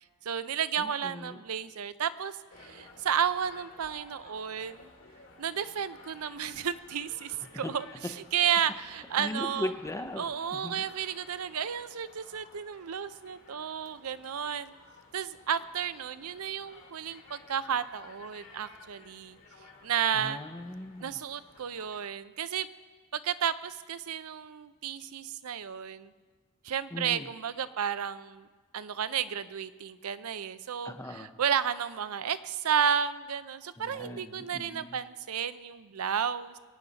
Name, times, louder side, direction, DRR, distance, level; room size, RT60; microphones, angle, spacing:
voice 1, 0.3-4.9 5.4-7.9 8.3-9.7 10.2-14.7 15.1-19.4 19.8-20.4 21.0-22.7 23.1-26.1 26.6-28.5 28.7-36.5, right 8 dB, 75° right, 14 dB, 0.5 m, -32 dB
voice 2, 0.8-1.4 7.6-7.7 9.2-10.8 20.1-21.2 26.9-27.3 30.8-31.3 33.8-35.0, left 1 dB, 15° left, 8 dB, 0.7 m, -39 dB
sound 1, 2.5-22.0, left 3 dB, 65° left, 2.4 m, -55 dB
23.5 x 9.3 x 4.0 m, 1.4 s
head